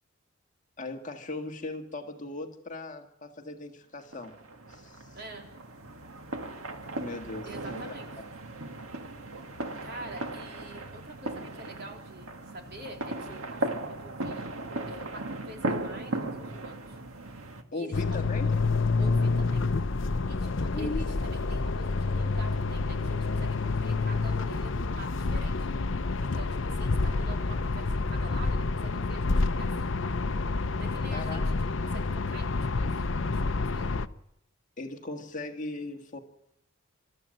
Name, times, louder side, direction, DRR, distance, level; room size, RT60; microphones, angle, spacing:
voice 1, 0.8-4.3 4.7-5.2 7.0-7.9 17.7-18.5 20.7-21.0 31.1-31.4 34.8-36.2, left 2 dB, 35° left, 4 dB, 1.8 m, -38 dB
sound 1, 4.1-17.6, right 2 dB, 85° right, 1.8 m, -37 dB
voice 2, 5.1-5.5 7.5-8.1 9.8-14.5 14.9-17.0 17.7-18.2 19.0-19.6 20.3-25.7 26.2-29.9 30.8-33.9, right 1 dB, 50° right, 2 dB, 3.8 m, -46 dB
sound 2, 17.9-34.1, left 3 dB, 65° left, 0.7 m, -28 dB
26.5 x 13.5 x 7.8 m, 0.84 s
head